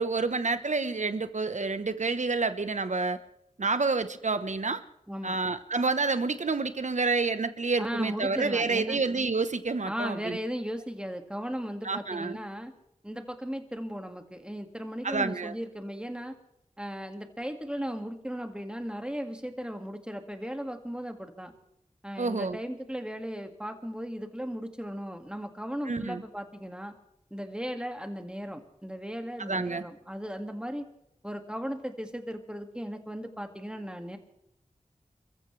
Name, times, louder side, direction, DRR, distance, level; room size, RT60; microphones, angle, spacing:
voice 1, 0.0-3.2 3.6-4.8 5.2-10.4 11.8-12.4 15.0-15.5 22.2-22.6 25.9-26.2 29.5-29.8, right 3 dB, 60° right, 11 dB, 1.1 m, -28 dB
voice 2, 5.1-5.4 7.8-9.0 9.9-12.7 13.0-16.4 16.8-21.5 22.0-26.9 27.3-30.9 31.2-34.2, equal, 5° right, 5 dB, 2.1 m, -36 dB
29.0 x 14.5 x 3.3 m, 0.81 s
wide cardioid pair, 50°, 14 cm